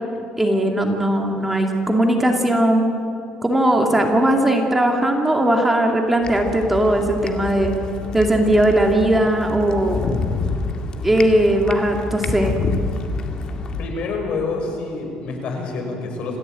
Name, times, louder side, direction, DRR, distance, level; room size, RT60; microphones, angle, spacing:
voice 1, 0.4-2.9 3.4-7.7 8.1-10.0 11.0-12.5, right 1 dB, 10° right, 2 dB, 2.3 m, -18 dB
sound 1, 6.2-13.9, left 4 dB, 40° left, 2.1 m, -28 dB
voice 2, 13.8-16.4, left 3 dB, 55° left, 3 dB, 5.5 m, -27 dB
27.5 x 16.0 x 9.0 m, 2.7 s
cardioid pair, 130°, 2 cm